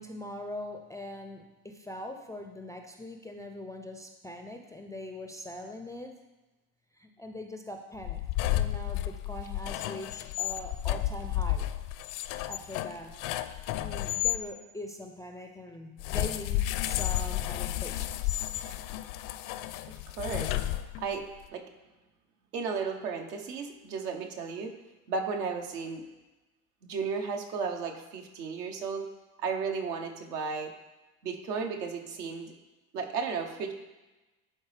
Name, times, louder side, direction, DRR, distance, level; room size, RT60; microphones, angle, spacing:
voice 1, 0.0-6.1 7.0-8.2 8.5-11.7 12.5-13.1 13.8-18.4, left 1 dB, 10° left, 3 dB, 0.3 m, -42 dB
sound 1, 8.0-14.4 16.0-21.2, left 14 dB, 60° left, 0.5 m, -32 dB
voice 2, 19.9-20.6 21.0-21.2 21.5-21.6 22.5-24.7 25.1-26.1 26.8-29.1 29.4-30.7 31.2-32.5 32.9-33.7, right 5 dB, 80° right, 4 dB, 1.0 m, -34 dB
11.0 x 4.2 x 3.3 m, 1.1 s
hypercardioid pair, 75°, 48 cm